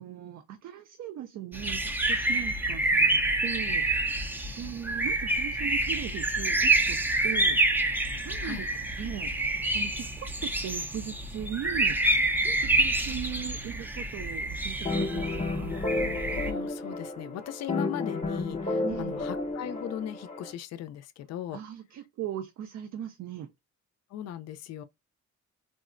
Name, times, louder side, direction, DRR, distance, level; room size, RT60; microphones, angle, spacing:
voice 1, 0.0-3.9 4.6-7.0 7.2-7.6 8.2-8.7 9.0-9.3 9.7-12.0 12.4-15.7 18.8-19.3 21.5-23.5, right 10 dB, 60° right, 0.5 m, -38 dB
sound 1, 1.5-16.5, right 2 dB, 5° right, 0.4 m, -27 dB
sound 2, 14.8-20.5, left 2 dB, 25° left, 0.8 m, -32 dB
voice 2, 16.3-21.6 24.1-24.8, left 11 dB, 60° left, 0.4 m, -38 dB
3.6 x 2.0 x 2.4 m
cardioid pair, 90°, 30 cm